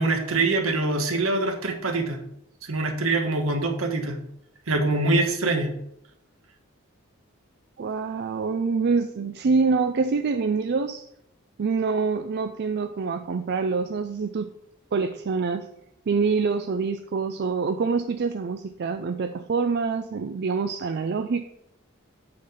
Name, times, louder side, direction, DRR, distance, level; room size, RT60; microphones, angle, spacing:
voice 1, 0.0-2.2 2.7-4.2 4.7-5.7, right 2 dB, 75° right, 3 dB, 1.4 m, -24 dB
voice 2, 7.8-11.1 11.6-14.5 14.9-15.7 16.1-21.4, right 4 dB, 50° right, 8 dB, 0.4 m, -25 dB
8.4 x 3.9 x 6.8 m, 0.78 s
head